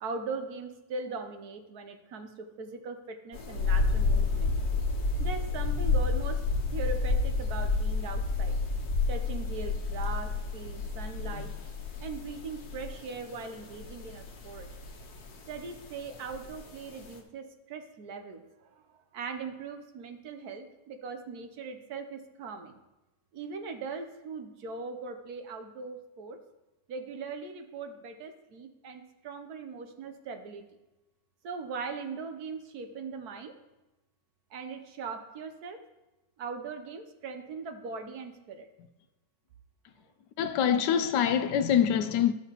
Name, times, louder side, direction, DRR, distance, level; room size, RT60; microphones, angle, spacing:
voice 1, 0.0-4.5 5.2-6.5 6.7-8.6 9.1-11.5 12.0-14.7 15.5-18.8 19.1-22.8 23.3-26.4 26.9-30.7 31.4-33.5 34.5-35.8 36.4-38.7, right 4 dB, 65° right, 1.2 m, -40 dB
sound 1, 3.3-17.2, left 3 dB, 65° left, 1.5 m, -30 dB
voice 2, 40.4-42.3, left 8 dB, 80° left, 1.2 m, -25 dB
14.0 x 5.9 x 2.9 m
omnidirectional pair, 1.8 m